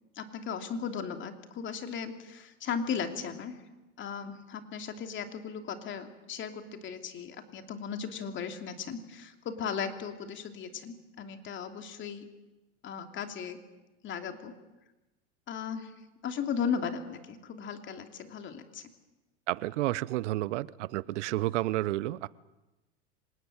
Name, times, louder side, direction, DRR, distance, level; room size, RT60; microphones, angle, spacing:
voice 1, 0.1-3.6 4.0-12.2 12.8-13.6 14.0-14.5 15.5-15.9 16.2-18.9, left 6 dB, 30° left, 6 dB, 3.0 m, -36 dB
voice 2, 19.5-22.3, right 16 dB, 70° right, 20 dB, 0.9 m, -31 dB
26.0 x 19.5 x 8.9 m, 1.1 s
supercardioid pair, 125°, 36 cm